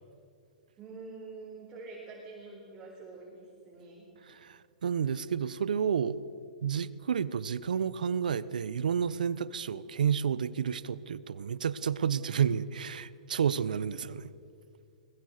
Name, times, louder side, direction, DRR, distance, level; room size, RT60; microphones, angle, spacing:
voice 1, 0.8-4.1, right 3 dB, 15° right, 4.5 m, -46 dB
voice 2, 4.3-6.2 6.6-14.3, right 7 dB, 80° right, 0.8 m, -30 dB
22.5 x 20.5 x 6.7 m
hypercardioid pair, 135°, 4 cm